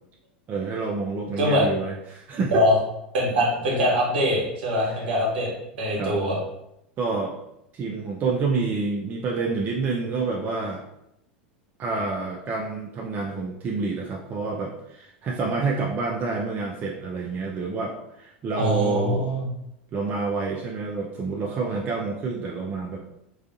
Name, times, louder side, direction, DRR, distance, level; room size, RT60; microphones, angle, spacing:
voice 1, 0.5-2.5 4.8-5.0 6.0-6.2 7.0-7.4 7.7-10.8 11.8-19.3 19.9-23.0, right 4 dB, 30° right, -1 dB, 0.4 m, -28 dB
voice 2, 3.1-5.5 5.8-6.4 18.5-19.5, equal, 70° right, -3 dB, 1.0 m, -23 dB
2.4 x 2.3 x 2.5 m, 0.82 s
hypercardioid pair, 90°, 6 cm